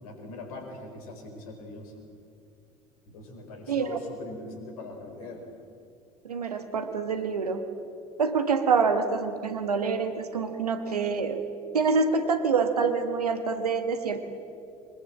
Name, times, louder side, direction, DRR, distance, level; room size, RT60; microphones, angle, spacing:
voice 1, 0.0-2.0 3.1-5.4, left 2 dB, 65° left, 4 dB, 4.6 m, -41 dB
voice 2, 3.7-4.0 6.2-7.7 8.2-11.4 11.7-14.2, right 5 dB, 80° right, 8 dB, 1.6 m, -26 dB
23.0 x 21.0 x 7.6 m, 2.4 s
figure-of-eight pair, 65°, 20 cm